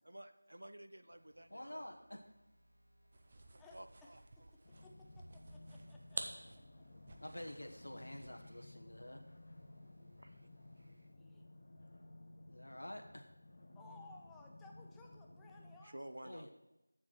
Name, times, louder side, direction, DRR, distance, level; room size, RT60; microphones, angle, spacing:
voice 1, 0.0-1.9 3.7-4.2 4.7-4.8 6.6-7.1 8.3-8.7 10.2-10.5 10.8-11.1 15.8-16.5, right 1 dB, 80° right, 10 dB, 0.7 m, -54 dB
sound 1, 1.1-11.1, equal, 45° right, 2.5 m, -68 dB
voice 2, 1.5-2.3 7.2-9.2 12.5-13.3 16.2-16.5, left 1 dB, 80° left, 3 dB, 1.2 m, -49 dB
sound 2, 3.1-8.5, right 2 dB, 30° right, 0.7 m, -51 dB
voice 3, 3.6-4.1 4.4-6.8 11.2-11.4 13.7-16.5, left 3 dB, 5° left, -1 dB, 0.4 m, -61 dB
sound 3, 4.6-15.8, left 2 dB, 40° left, 1.1 m, -57 dB
7.5 x 7.3 x 6.2 m, 0.98 s
figure-of-eight pair, 175°, 0 cm